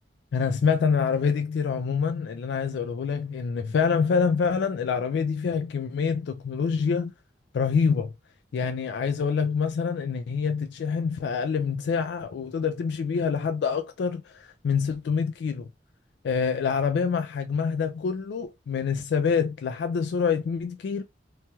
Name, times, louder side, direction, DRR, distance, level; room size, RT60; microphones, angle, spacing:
voice 1, 0.3-7.1 7.5-8.1 8.5-15.7 16.2-21.0, left 6 dB, 70° left, 0.3 m, -26 dB
2.9 x 2.3 x 2.8 m
head